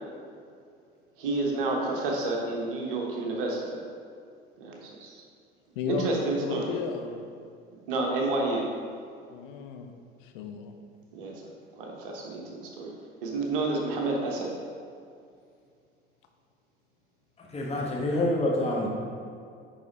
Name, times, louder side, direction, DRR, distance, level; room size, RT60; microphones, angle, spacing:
voice 1, 1.2-3.6 4.6-5.2 5.9-6.7 7.9-8.7 11.1-11.3 11.8-12.9 13.2-14.5, right 2 dB, 65° right, -1 dB, 1.4 m, -29 dB
voice 2, 5.7-7.2 9.3-9.9 10.2-10.7, left 6 dB, 60° left, 5 dB, 0.8 m, -34 dB
voice 3, 17.4-18.9, left 1 dB, 20° left, -3 dB, 1.7 m, -27 dB
10.5 x 4.2 x 4.0 m, 2.4 s
figure-of-eight pair, 60°, 29 cm